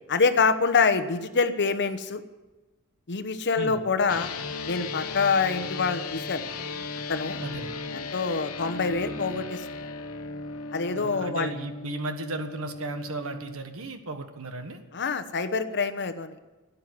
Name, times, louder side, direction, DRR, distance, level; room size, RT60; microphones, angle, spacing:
voice 1, 0.1-2.2 3.1-4.3 4.7-6.4 7.1-7.4 7.9-9.6 10.7-11.5 14.9-16.4, left 4 dB, 50° left, 9 dB, 1.0 m, -25 dB
sound 1, 4.1-13.5, left 3 dB, 70° left, 1.1 m, -36 dB
voice 2, 7.4-7.8 10.9-14.8, right 2 dB, 70° right, 7 dB, 1.5 m, -35 dB
12.5 x 10.0 x 9.6 m, 1.2 s
head